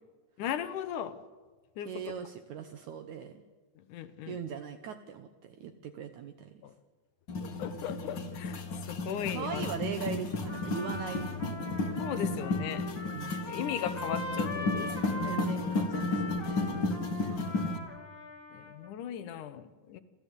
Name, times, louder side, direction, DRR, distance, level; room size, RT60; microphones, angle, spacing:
voice 1, 0.4-1.2 1.8-2.1 3.9-4.4 6.6-6.7 7.4-9.7 12.0-12.8 13.5-15.4 18.5-20.0, left 9 dB, 70° left, 12 dB, 2.4 m, -37 dB
voice 2, 1.9-3.4 4.3-6.6 9.3-11.3 13.1-13.4 15.2-17.1, right 7 dB, 70° right, 7 dB, 2.2 m, -40 dB
sound 1, 7.3-17.8, left 3 dB, 40° left, 2.0 m, -33 dB
Trumpet, 10.4-18.9, left 1 dB, 10° left, 1.5 m, -41 dB
29.5 x 13.5 x 8.3 m, 1.4 s
omnidirectional pair, 3.9 m